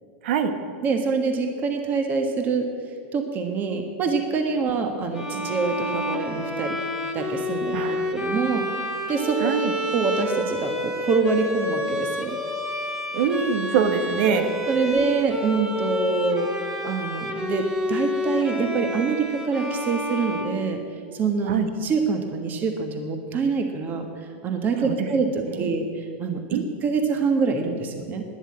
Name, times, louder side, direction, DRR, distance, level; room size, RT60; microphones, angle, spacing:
voice 1, 0.8-2.7 3.1-6.8 7.1-8.6 9.1-9.5 9.9-12.4 14.7-16.5 16.8-20.8 21.1-28.2, right 4 dB, 30° right, 5 dB, 1.4 m, -25 dB
Bowed string instrument, 5.1-21.2, left 1 dB, 10° right, 1.6 m, -29 dB
voice 2, 7.7-8.1 9.4-9.7 13.1-14.5 21.5-21.7 24.8-25.1 25.5-25.7 26.5-26.6, right 7 dB, 70° right, 8 dB, 1.5 m, -24 dB
11.5 x 10.5 x 8.7 m, 2.3 s
supercardioid pair, 135°, 6 cm